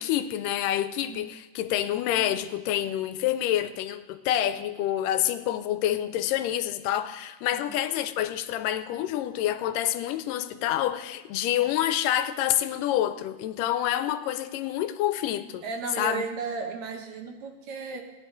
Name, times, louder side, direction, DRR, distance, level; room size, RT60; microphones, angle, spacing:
voice 1, 0.0-15.6 16.0-16.3, left 12 dB, 85° left, 2.2 m, -27 dB
voice 2, 15.6-18.0, right 4 dB, 70° right, 2.1 m, -34 dB
17.5 x 10.5 x 3.8 m
omnidirectional pair, 3.8 m